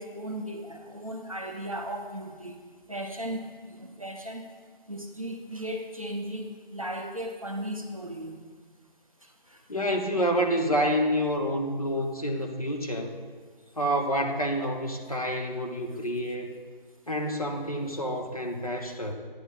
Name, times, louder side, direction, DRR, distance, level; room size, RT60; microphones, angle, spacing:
voice 1, 0.0-2.6 2.9-4.5 4.9-8.4 9.5-9.6, right 1 dB, 35° right, 2 dB, 0.6 m, -36 dB
voice 2, 9.7-13.2 13.8-16.6 17.1-19.1, equal, 40° left, 2 dB, 0.7 m, -28 dB
10.0 x 9.8 x 2.3 m, 1.6 s
figure-of-eight pair, 175°, 29 cm